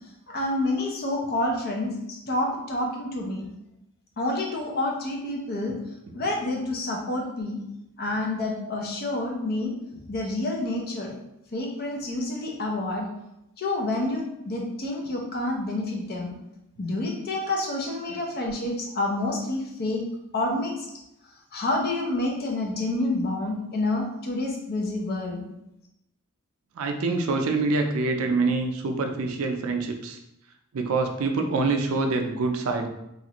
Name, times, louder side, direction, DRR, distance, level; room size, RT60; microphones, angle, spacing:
voice 1, 0.3-3.5 4.2-5.8 6.1-7.6 8.0-11.1 11.5-13.1 13.6-16.3 16.8-20.0 20.3-20.9 21.5-25.4, left 2 dB, 45° left, 0 dB, 0.6 m, -28 dB
voice 2, 26.8-30.2 30.7-32.9, right 3 dB, 70° right, 4 dB, 0.4 m, -25 dB
3.1 x 2.4 x 2.9 m, 0.87 s
head